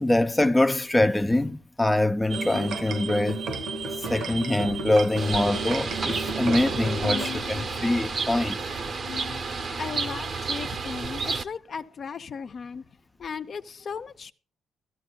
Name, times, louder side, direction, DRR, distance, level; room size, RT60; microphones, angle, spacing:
voice 1, 0.0-3.5 4.0-8.6, left 1 dB, 10° left, 0.4 m, -24 dB
sound 1, 2.3-7.3, right 4 dB, 75° right, 1.3 m, -33 dB
Bird, 5.2-11.4, right 4 dB, 45° right, 0.8 m, -31 dB
sound 2, 6.7-10.2, left 10 dB, 75° left, 0.9 m, -42 dB
voice 2, 9.8-12.8 13.2-14.3, left 6 dB, 50° left, 0.6 m, -36 dB
13.5 x 13.5 x 2.3 m
cardioid pair, 90°, 0 cm